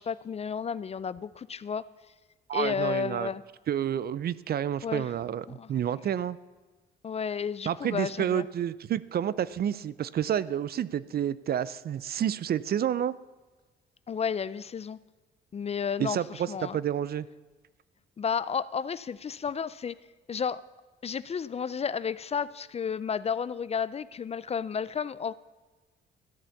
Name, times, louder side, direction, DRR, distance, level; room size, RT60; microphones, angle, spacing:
voice 1, 0.0-1.9 2.5-3.4 4.8-5.1 5.5-5.7 7.0-8.5 14.1-15.0 15.5-16.8 18.2-20.0 20.3-20.6 21.0-25.3, left 6 dB, 30° left, 17 dB, 0.4 m, -32 dB
voice 2, 2.5-3.3 3.7-6.4 7.7-13.1 16.0-17.3, right 10 dB, 50° right, 18 dB, 0.5 m, -29 dB
13.5 x 8.8 x 7.0 m, 1.3 s
cardioid pair, 90°, 20 cm